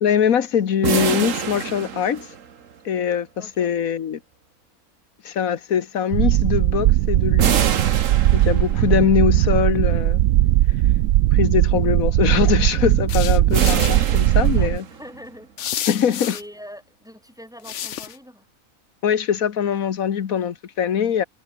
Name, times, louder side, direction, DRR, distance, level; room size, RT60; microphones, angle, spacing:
voice 1, 0.0-2.3 2.8-4.2 5.2-7.7 8.3-10.2 11.3-14.8 15.9-16.3 19.0-21.2, left 8 dB, 90° left, 1.6 m, -22 dB
sound 1, 0.8-2.7 7.4-9.0 13.5-15.2, right 7 dB, 65° right, 1.7 m, -26 dB
voice 2, 3.4-3.7 14.4-15.5 16.3-18.5, equal, ahead, 6.6 m, -43 dB
sound 2, 6.1-14.8, right 14 dB, 90° right, 1.0 m, -18 dB
sound 3, 13.1-13.9 15.6-16.4 17.6-18.2, left 10 dB, 60° left, 1.1 m, -30 dB
omnidirectional pair, 1.4 m